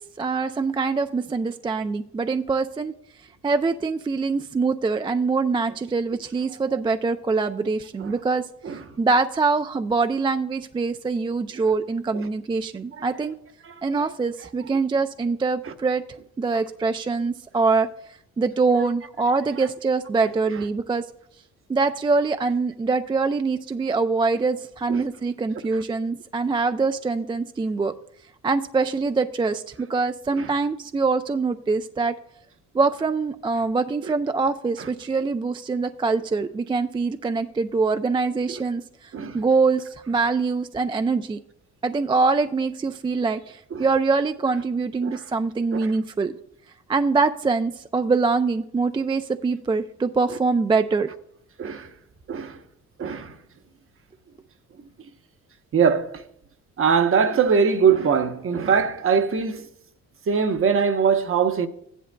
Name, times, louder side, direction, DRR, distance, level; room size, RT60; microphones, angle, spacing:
voice 1, 0.2-2.9 3.4-13.3 13.8-16.0 16.4-21.1 21.7-27.9 28.4-32.1 32.7-41.4 41.8-46.3 46.9-51.1, right 4 dB, 15° right, 0.3 m, -24 dB
voice 2, 13.6-14.1 15.6-15.7 24.9-25.0 30.3-30.5 34.0-34.1 34.8-34.9 39.1-39.4 43.7-43.9 45.0-45.2 45.7-45.9 51.6-51.9 52.3-52.6 53.0-53.4 55.7-56.2 56.8-59.7 60.3-61.7, right 6 dB, 45° right, 0.9 m, -22 dB
14.5 x 10.0 x 2.2 m
cardioid pair, 90°, 30 cm